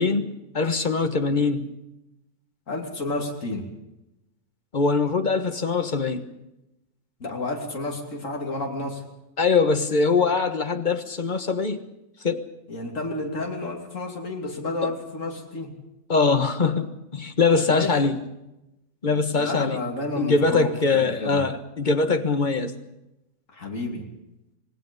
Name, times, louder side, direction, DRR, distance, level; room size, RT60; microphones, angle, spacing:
voice 1, 0.0-1.7 4.7-6.3 9.4-11.8 12.2-12.5 14.8-14.9 16.1-18.2 19.0-19.8 20.2-22.7, left 4 dB, 35° left, 8 dB, 1.4 m, -22 dB
voice 2, 2.7-3.7 7.2-9.0 12.7-15.7 17.7-17.9 19.4-21.4 23.5-24.1, left 2 dB, 60° left, 1 dB, 3.2 m, -30 dB
26.5 x 19.0 x 5.3 m, 0.91 s
omnidirectional pair, 1.5 m